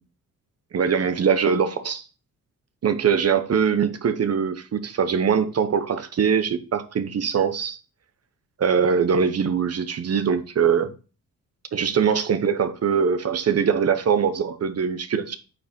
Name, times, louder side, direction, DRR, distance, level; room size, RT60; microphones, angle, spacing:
voice 1, 0.7-2.0 2.8-7.8 8.6-10.9 11.7-15.4, right 6 dB, 45° right, 1.0 m, -22 dB
9.0 x 5.2 x 4.3 m
wide cardioid pair, 155°, 34 cm